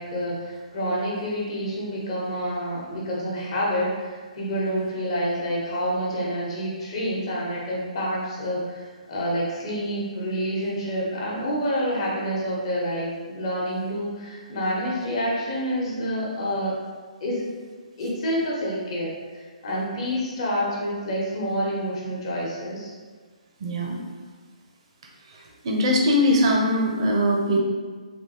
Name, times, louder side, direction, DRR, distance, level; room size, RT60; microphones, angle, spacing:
voice 1, 0.0-16.7 17.2-17.4 18.0-22.9, equal, 45° left, -4 dB, 1.0 m, -28 dB
voice 2, 23.6-24.0 25.3-27.6, left 1 dB, 45° right, 0 dB, 0.6 m, -21 dB
3.5 x 2.6 x 2.8 m, 1.5 s
figure-of-eight pair, 135°, 4 cm